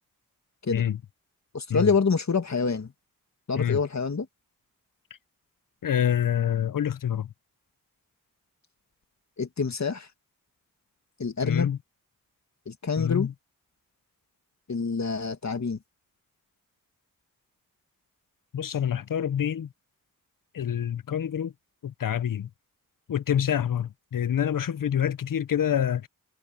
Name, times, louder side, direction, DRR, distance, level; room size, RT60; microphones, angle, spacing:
voice 1, 1.5-2.9 3.5-4.3 9.4-10.1 11.2-11.7 12.7-13.3 14.7-15.8, left 5 dB, 55° left, 2.4 m, -26 dB
voice 2, 5.8-7.3 11.4-11.8 13.0-13.3 18.5-19.7 20.5-21.5 21.8-22.5 23.1-26.1, left 9 dB, 75° left, 0.8 m, -26 dB
cardioid pair, 50°, 33 cm